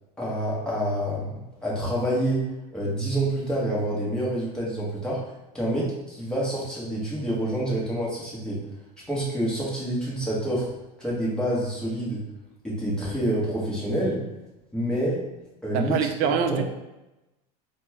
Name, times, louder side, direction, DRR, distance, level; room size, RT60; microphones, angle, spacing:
voice 1, 0.2-2.4 2.7-5.2 5.5-8.6 9.1-10.7 11.0-12.2 12.6-14.2 14.7-15.2 15.6-16.6, right 1 dB, 5° left, -6 dB, 1.1 m, -27 dB
voice 2, 15.7-16.6, right 7 dB, 50° right, 6 dB, 0.4 m, -24 dB
4.2 x 2.2 x 2.9 m, 0.98 s
supercardioid pair, 135°, 21 cm